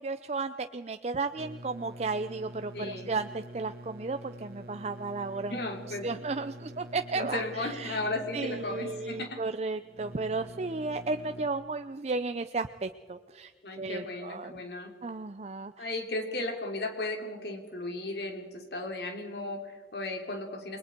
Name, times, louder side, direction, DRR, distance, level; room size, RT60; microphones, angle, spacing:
voice 1, 0.0-5.6 6.0-8.0 8.3-13.5 13.8-14.5 15.0-15.9, right 3 dB, 35° right, 9 dB, 0.5 m, -34 dB
sound 1, 1.4-11.5, equal, 55° right, 1.9 m, -46 dB
voice 2, 2.7-3.1 5.5-6.2 7.1-9.4 13.6-14.9 15.8-20.8, left 2 dB, 65° left, 3 dB, 3.1 m, -35 dB
29.0 x 21.5 x 4.5 m, 1.5 s
head